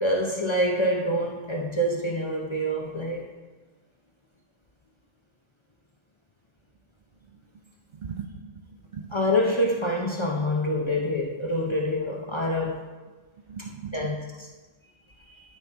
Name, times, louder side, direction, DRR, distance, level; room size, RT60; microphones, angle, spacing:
voice 1, 0.0-3.3 9.1-12.8 13.9-14.2, equal, 30° left, 0.6 m, -26 dB
voice 2, 7.3-7.6 7.9-9.2 13.5-14.1, right 6 dB, 55° right, 0.5 m, -39 dB
11.5 x 5.4 x 3.5 m
omnidirectional pair, 1.3 m